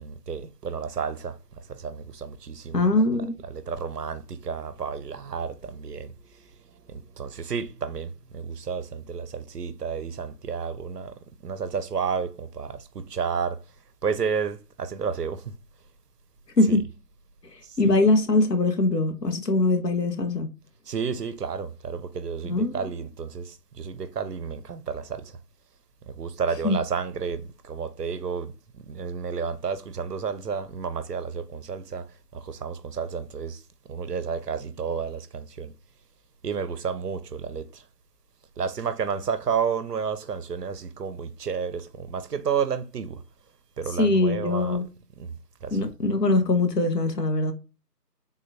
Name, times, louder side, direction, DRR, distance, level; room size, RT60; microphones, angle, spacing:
voice 1, 0.0-13.6 14.0-15.5 16.6-16.9 17.6-18.0 20.9-25.4 26.1-33.6 33.9-35.7 36.4-37.8 38.6-43.2 43.8-44.9 45.2-45.3 45.6-45.9, right 6 dB, 70° right, 0.5 m, -31 dB
voice 2, 2.7-3.4 16.6-16.8 17.5-20.5 22.4-22.9 26.6-26.8 44.0-44.9 45.7-47.5, left 2 dB, 75° left, 0.8 m, -22 dB
3.6 x 2.2 x 2.6 m
figure-of-eight pair, 180°, 50 cm